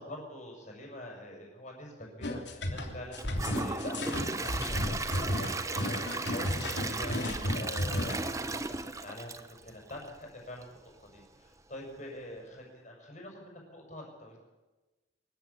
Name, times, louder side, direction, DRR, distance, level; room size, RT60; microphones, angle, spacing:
voice 1, 0.0-14.4, left 1 dB, 40° left, 0 dB, 6.5 m, -45 dB
sound 1, 2.2-8.2, left 1 dB, 65° left, 3.0 m, -33 dB
Gurgling / Toilet flush / Trickle dribble, 3.1-10.2 10.6-10.7 11.2-11.3, right 3 dB, 15° right, 0.8 m, -36 dB
24.5 x 14.0 x 8.6 m, 1.2 s
head